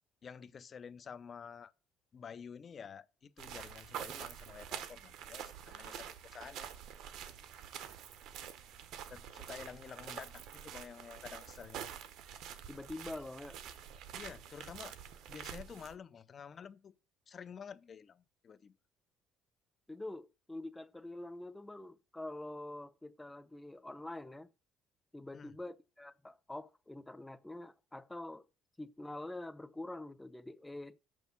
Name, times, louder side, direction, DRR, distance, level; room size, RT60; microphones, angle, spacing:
voice 1, 0.2-1.7 2.1-6.7 9.1-11.9 14.1-14.9 15.3-16.9 17.3-18.8 25.3-25.5, left 7 dB, 40° left, 0.7 m, -50 dB
sound 1, 3.4-15.9, right 9 dB, 75° right, 1.1 m, -47 dB
voice 2, 12.7-13.6 19.9-24.5 25.1-28.4 28.8-31.0, left 2 dB, 10° left, 0.7 m, -45 dB
7.1 x 6.3 x 7.0 m
cardioid pair, 95°, 0 cm